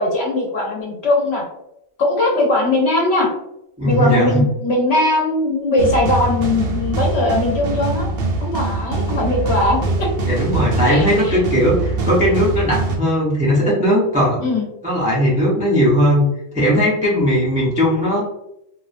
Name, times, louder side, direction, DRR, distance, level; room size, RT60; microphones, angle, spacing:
voice 1, 0.0-1.4 2.0-3.3 3.8-8.1 8.4-10.1 10.9-11.4 14.4-14.6, left 2 dB, 60° left, -2 dB, 0.8 m, -19 dB
voice 2, 3.8-4.4 10.3-14.4 14.8-16.3 16.5-18.2, equal, 10° right, -6 dB, 0.4 m, -17 dB
sound 1, 5.8-13.0, right 3 dB, 60° right, 0.7 m, -23 dB
2.3 x 2.2 x 2.4 m, 0.83 s
omnidirectional pair, 1.4 m